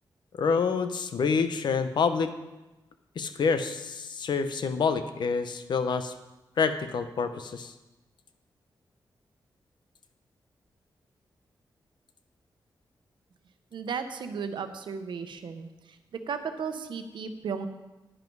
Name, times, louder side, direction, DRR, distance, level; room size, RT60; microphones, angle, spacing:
voice 1, 0.4-2.3 3.2-6.1 6.6-7.7, left 5 dB, 70° left, 9 dB, 0.9 m, -27 dB
voice 2, 13.7-15.7 16.3-17.7, right 6 dB, 80° right, 8 dB, 1.0 m, -34 dB
10.5 x 10.0 x 4.7 m, 1.1 s
wide cardioid pair, 135°, 8 cm